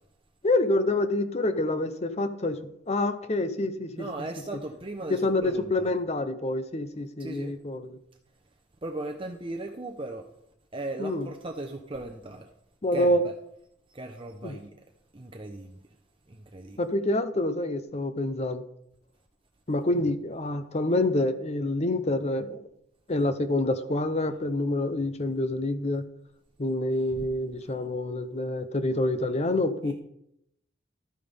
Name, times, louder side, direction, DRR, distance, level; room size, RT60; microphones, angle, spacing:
voice 1, 0.4-2.6 2.9-4.1 5.1-8.0 11.0-11.3 12.8-13.2 14.4-14.6 16.8-18.6 19.7-22.6 23.1-26.0 26.6-29.9, left 2 dB, 35° left, 10 dB, 0.8 m, -27 dB
voice 2, 3.9-5.9 7.2-7.5 8.8-10.3 10.7-12.5 12.9-13.3 13.9-14.7 15.1-15.8 16.3-16.8 19.9-20.1 29.8-29.9, right 2 dB, 30° right, 3 dB, 0.8 m, -37 dB
13.0 x 9.2 x 3.5 m, 0.77 s
head